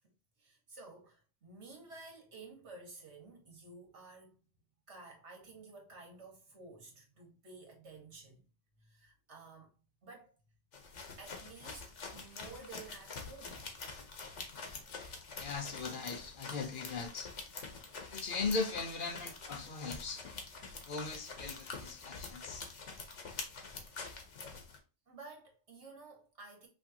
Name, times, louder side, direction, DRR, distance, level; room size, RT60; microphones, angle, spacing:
voice 1, 0.4-4.4 4.9-8.4 8.8-9.7 10.0-10.3 11.2-13.6 22.4-22.6 25.1-26.7, right 3 dB, 70° right, 2.0 m, -53 dB
sound 1, 10.7-24.8, left 4 dB, 85° left, 1.5 m, -46 dB
voice 2, 15.4-17.3 18.1-20.3 20.9-22.7, left 4 dB, 50° left, 0.9 m, -39 dB
5.8 x 3.2 x 2.8 m
omnidirectional pair, 1.2 m